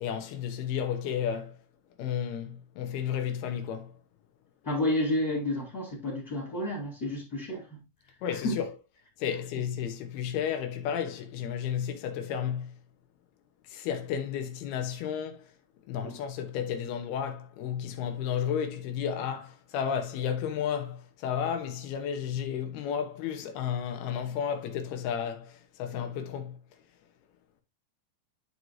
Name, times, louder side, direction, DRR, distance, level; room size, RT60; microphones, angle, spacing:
voice 1, 0.0-1.6 2.0-4.0 8.2-8.7 9.2-12.7 13.7-15.5 15.9-26.6, left 8 dB, 90° left, 3.0 m, -32 dB
voice 2, 4.6-7.8 8.4-8.6 16.0-16.2, left 1 dB, 30° left, 2.3 m, -30 dB
11.0 x 4.8 x 2.6 m
omnidirectional pair, 4.4 m